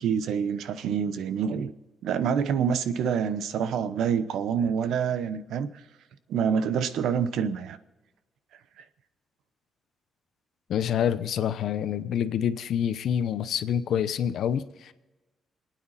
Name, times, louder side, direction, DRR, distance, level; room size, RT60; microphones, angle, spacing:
voice 1, 0.0-1.7 2.0-5.7 6.3-7.8, right 7 dB, 80° right, 13 dB, 0.9 m, -27 dB
voice 2, 10.7-14.9, left 9 dB, 65° left, 12 dB, 0.8 m, -27 dB
27.0 x 9.3 x 4.2 m, 1.1 s
cardioid pair, 180°, 0 cm